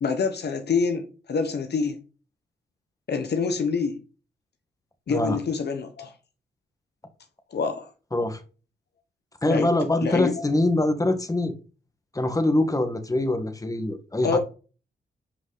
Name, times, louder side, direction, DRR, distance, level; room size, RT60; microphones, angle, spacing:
voice 1, 0.0-2.0 3.1-4.0 5.1-6.1 7.5-7.9 9.5-9.7 10.0-10.4 14.2-14.4, left 5 dB, 65° left, 1.3 m, -26 dB
voice 2, 9.4-11.5 12.1-14.4, left 1 dB, 20° left, 1.7 m, -24 dB
8.5 x 5.4 x 4.1 m
cardioid pair, 55°, 19 cm